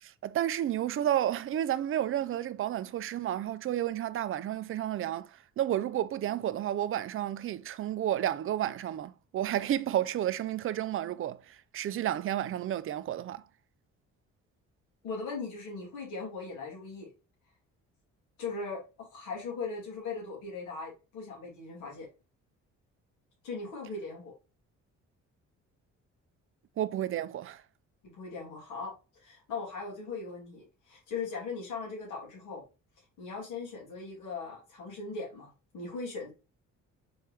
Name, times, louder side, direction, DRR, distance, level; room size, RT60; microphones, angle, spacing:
voice 1, 0.0-13.4 26.8-27.6, right 11 dB, 45° right, 0.4 m, -31 dB
voice 2, 15.0-17.1 18.4-22.1 23.4-24.3 28.0-28.9 29.2-32.6 33.2-36.3, left 4 dB, 85° left, 2.5 m, -39 dB
4.3 x 3.4 x 3.3 m
cardioid pair, 90°, 30 cm